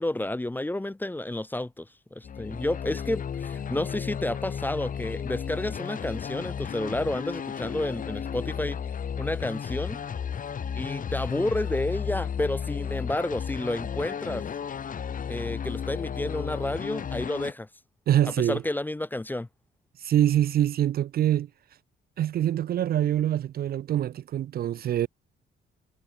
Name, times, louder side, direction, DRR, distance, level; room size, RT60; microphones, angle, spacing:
voice 1, 0.0-8.8 9.2-10.0 10.8-14.4 15.3-17.7 18.2-19.5, left 1 dB, 10° left, 0.5 m, -30 dB
sound 1, 2.2-17.5, left 7 dB, 45° left, 1.0 m, -33 dB
voice 2, 18.1-18.6 20.0-21.5 22.2-25.1, right 11 dB, 50° right, 0.4 m, -24 dB
cardioid pair, 90°, 20 cm